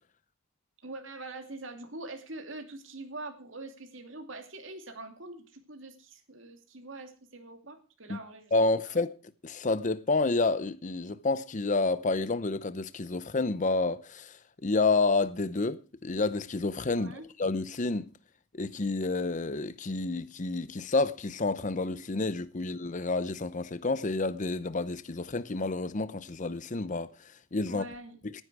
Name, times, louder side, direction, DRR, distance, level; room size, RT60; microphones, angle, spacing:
voice 1, 0.8-8.5 8.8-8.9 16.9-17.2 27.7-28.2, right 2 dB, 65° right, 2.6 m, -44 dB
voice 2, 8.5-9.1 9.4-18.1 18.5-27.8 28.2-28.4, left 3 dB, 40° left, 0.7 m, -29 dB
18.0 x 10.0 x 4.8 m
head